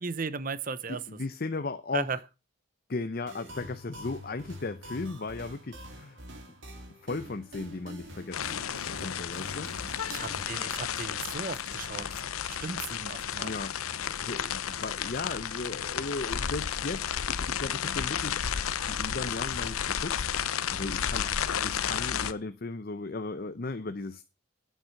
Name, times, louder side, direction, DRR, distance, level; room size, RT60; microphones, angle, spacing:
voice 1, 0.0-1.0 1.9-2.2 10.0-12.1 12.4-13.5, right 4 dB, 40° right, 0.7 m, -36 dB
voice 2, 0.9-2.2 2.9-6.2 7.0-8.6 8.9-9.7 13.4-18.4 18.9-24.2, left 3 dB, 45° left, 0.6 m, -36 dB
sound 1, 3.3-10.4, equal, 60° right, 2.6 m, -45 dB
sound 2, 8.3-22.3, left 8 dB, 85° left, 0.7 m, -32 dB
9.2 x 7.4 x 6.3 m
head